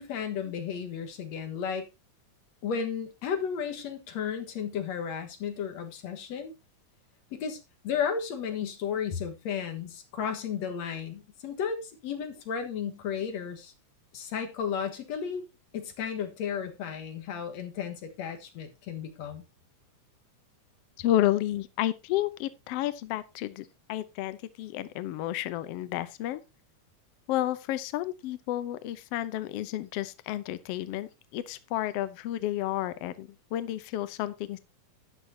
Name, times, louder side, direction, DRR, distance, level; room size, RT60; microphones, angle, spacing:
voice 1, 0.0-1.9 2.6-6.5 7.3-13.7 14.1-15.4 15.7-19.4, left 7 dB, 60° left, 2.6 m, -33 dB
voice 2, 21.0-26.4 27.3-34.6, left 13 dB, 80° left, 1.4 m, -31 dB
12.5 x 9.1 x 2.8 m
omnidirectional pair, 3.6 m